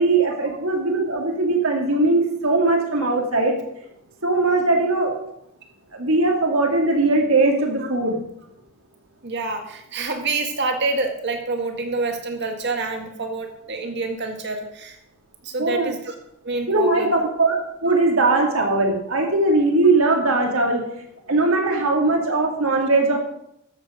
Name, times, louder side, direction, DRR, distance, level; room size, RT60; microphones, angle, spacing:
voice 1, 0.0-3.6 4.2-5.2 5.9-8.2 15.6-15.9 16.7-20.8 21.3-23.2, right 2 dB, 80° right, 2 dB, 2.3 m, -20 dB
voice 2, 9.2-15.0 15.4-16.1 16.4-17.1, right 3 dB, 55° right, 4 dB, 1.9 m, -27 dB
13.0 x 7.4 x 5.0 m, 0.79 s
head